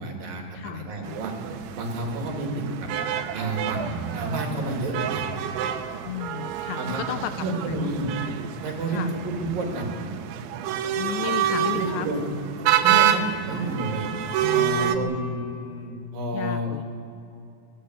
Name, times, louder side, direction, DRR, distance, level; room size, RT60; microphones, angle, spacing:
voice 1, 0.0-1.3 1.7-2.9 3.3-5.3 6.8-7.0 7.4-8.1 8.6-9.9 11.7-12.3 12.8-14.1 14.5-16.7, right 2 dB, 55° right, 1 dB, 4.1 m, -30 dB
voice 2, 0.5-1.2 6.0-7.9 8.9-9.1 11.0-12.1 14.4-15.2 16.3-16.8, left 11 dB, 80° left, 10 dB, 3.0 m, -33 dB
sound 1, 1.0-15.0, right 10 dB, 90° right, 3.4 m, -28 dB
24.5 x 18.0 x 8.1 m, 2.7 s
omnidirectional pair, 5.2 m